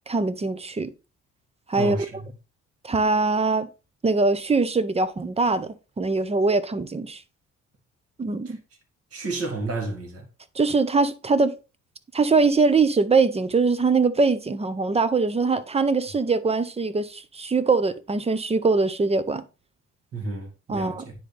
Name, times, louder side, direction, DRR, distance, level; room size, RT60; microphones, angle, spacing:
voice 1, 0.1-0.9 1.7-2.0 2.8-3.7 4.0-7.2 8.2-8.6 10.6-11.5 12.1-19.4 20.7-21.0, right 4 dB, 20° right, 0.7 m, -22 dB
voice 2, 1.8-2.3 8.5-8.6 9.1-10.3 20.1-21.1, right 3 dB, 50° right, 2.3 m, -31 dB
9.8 x 3.9 x 3.3 m
cardioid pair, 90°, 30 cm